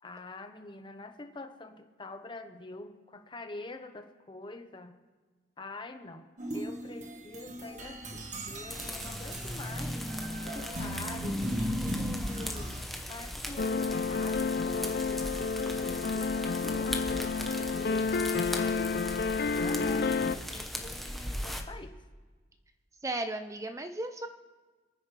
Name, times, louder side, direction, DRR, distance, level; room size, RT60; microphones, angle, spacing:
voice 1, 0.0-4.9 5.6-6.3 6.5-10.1 10.4-11.5 11.8-19.1 19.5-22.0, left 2 dB, 30° left, 7 dB, 1.0 m, -45 dB
sound 1, 6.4-12.8, equal, 45° right, 1.5 m, -36 dB
sound 2, 8.7-21.6, equal, ahead, 1.0 m, -39 dB
sound 3, 13.6-20.4, left 4 dB, 60° left, 0.5 m, -30 dB
voice 2, 23.0-24.3, right 2 dB, 20° right, 8 dB, 0.5 m, -35 dB
26.5 x 9.6 x 3.3 m, 1.4 s
head